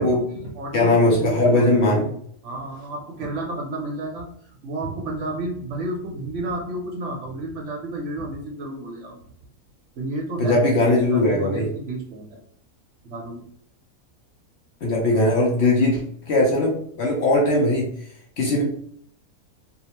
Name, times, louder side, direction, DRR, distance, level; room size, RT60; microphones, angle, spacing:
voice 1, 0.0-2.1 2.4-4.3 4.6-9.2 10.0-10.8 11.1-12.4 13.0-13.4, right 2 dB, 60° right, 0 dB, 0.9 m, -31 dB
voice 2, 0.7-2.0 10.4-11.7 14.8-17.8 18.4-18.6, left 2 dB, 60° left, -2 dB, 0.8 m, -19 dB
2.7 x 2.1 x 2.8 m, 0.63 s
omnidirectional pair, 1.5 m